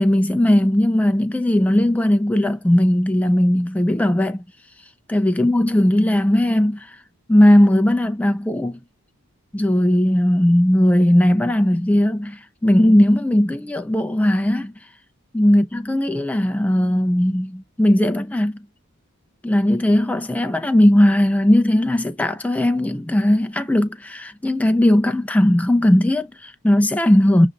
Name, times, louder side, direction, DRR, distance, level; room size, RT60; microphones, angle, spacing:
voice 1, 0.0-4.4 5.1-7.0 7.3-8.8 9.5-14.7 15.3-18.6 19.4-27.5, left 1 dB, 5° left, 0.3 m, -17 dB
6.9 x 2.5 x 2.4 m
head